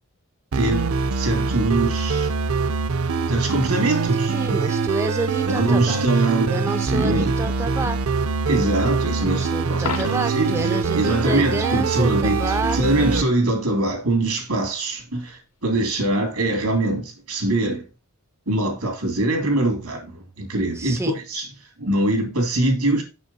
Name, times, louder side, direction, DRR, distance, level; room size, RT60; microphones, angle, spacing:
sound 1, 0.5-13.2, right 4 dB, 70° right, 0.6 m, -23 dB
voice 1, 0.5-2.3 3.3-4.3 4.6-4.8 5.5-7.3 8.5-17.9 18.5-21.0 21.3-21.5 21.8-23.0, right 2 dB, 90° right, 2.9 m, -23 dB
voice 2, 4.3-6.0 6.5-8.0 9.2-13.2 20.7-21.1, right 2 dB, 10° right, 0.3 m, -29 dB
Coin (dropping), 9.8-10.6 16.7-16.9, left 6 dB, 80° left, 0.8 m, -31 dB
6.3 x 6.2 x 4.0 m
head